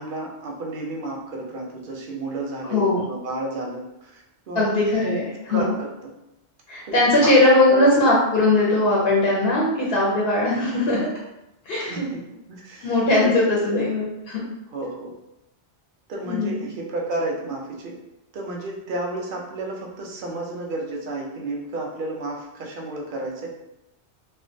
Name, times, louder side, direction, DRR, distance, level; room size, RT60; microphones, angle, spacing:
voice 1, 0.0-4.7 5.4-5.9 6.9-7.3 7.7-8.0 10.4-10.7 11.8-12.2 12.5-13.3 13.7-13.9 14.7-15.1 16.1-17.9 18.3-23.5, right 2 dB, 60° right, -1 dB, 0.6 m, -32 dB
voice 2, 2.6-3.0 4.5-5.7 6.7-11.1 11.7-12.1 12.8-14.4 16.2-16.6, left 2 dB, 65° left, -5 dB, 0.8 m, -20 dB
2.3 x 2.2 x 2.5 m, 0.89 s
omnidirectional pair, 1.2 m